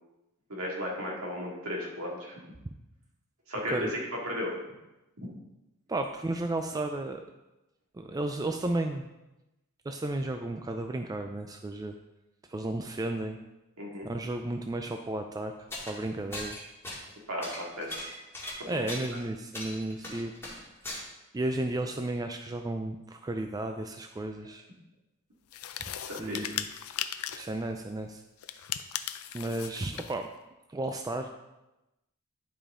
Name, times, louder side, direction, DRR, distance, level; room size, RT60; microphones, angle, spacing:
voice 1, 0.5-2.3 3.5-4.6 13.8-14.1 17.3-18.0 18.7-18.9 26.0-26.6, equal, 65° right, -2 dB, 2.1 m, -35 dB
voice 2, 5.9-7.2 7.9-9.1 9.8-12.0 12.5-13.4 14.0-15.5 15.8-16.6 18.7-20.3 21.3-24.6 25.9-26.7 27.3-28.2 29.3-30.3 30.7-31.3, right 2 dB, 15° right, 5 dB, 0.3 m, -33 dB
sound 1, 15.7-16.0 16.3-17.1 17.4-19.2 19.5-21.0, left 1 dB, 10° left, 1.9 m, -39 dB
sound 2, 25.5-27.6 28.4-30.2, left 11 dB, 70° left, 0.5 m, -37 dB
11.0 x 5.2 x 3.7 m, 0.98 s
head